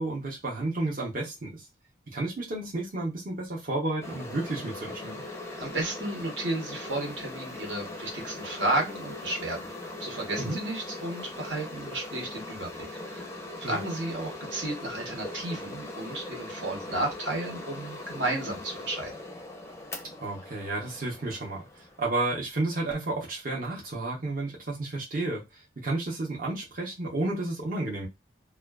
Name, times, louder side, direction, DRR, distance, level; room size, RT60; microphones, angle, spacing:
voice 1, 0.0-1.7 2.1-5.2 10.4-10.6 13.6-13.8 20.2-28.1, right 2 dB, 50° right, 0.7 m, -32 dB
sound 1, 4.0-22.5, left 2 dB, 15° left, 0.4 m, -40 dB
voice 2, 5.4-9.7 10.0-19.1, right 2 dB, 85° right, 1.0 m, -33 dB
2.4 x 2.2 x 2.2 m
head